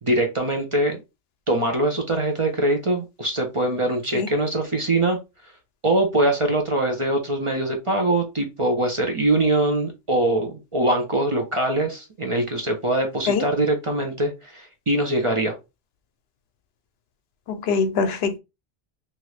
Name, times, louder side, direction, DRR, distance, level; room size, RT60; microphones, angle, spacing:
voice 1, 0.0-1.0 1.5-5.2 5.8-15.6, right 1 dB, 35° right, 0.6 m, -23 dB
voice 2, 17.5-18.4, left 5 dB, 75° left, 0.8 m, -23 dB
2.9 x 2.5 x 3.2 m
omnidirectional pair, 1.1 m